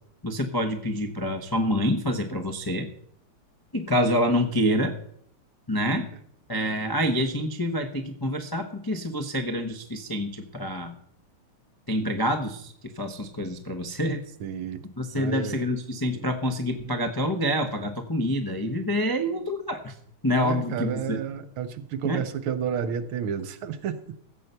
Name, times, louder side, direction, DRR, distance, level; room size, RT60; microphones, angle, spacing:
voice 1, 0.2-2.9 3.7-4.9 5.7-6.1 6.5-11.0 11.9-14.2 15.0-19.9 20.2-21.2 22.0-22.2, equal, 25° left, 5 dB, 0.5 m, -27 dB
voice 2, 14.4-14.9 15.1-15.6 16.1-16.2 20.4-24.0, right 7 dB, 75° right, 11 dB, 1.7 m, -31 dB
15.0 x 5.6 x 8.0 m, 0.66 s
omnidirectional pair, 2.4 m